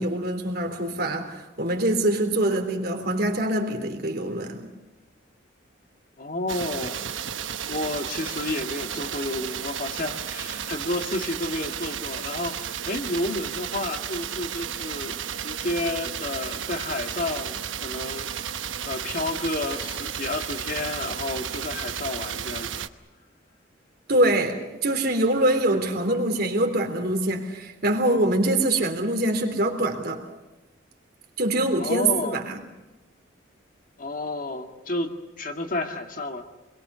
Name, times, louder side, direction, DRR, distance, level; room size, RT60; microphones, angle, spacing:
voice 1, 0.0-4.7 24.1-30.2 31.4-32.6, right 1 dB, 50° right, 3.6 m, -24 dB
voice 2, 6.2-7.1 7.7-18.3 18.8-22.8 31.8-32.4 34.0-36.5, left 2 dB, 45° left, 2.1 m, -31 dB
sound 1, 6.5-22.9, right 8 dB, 75° right, 1.0 m, -33 dB
27.0 x 22.0 x 6.9 m
head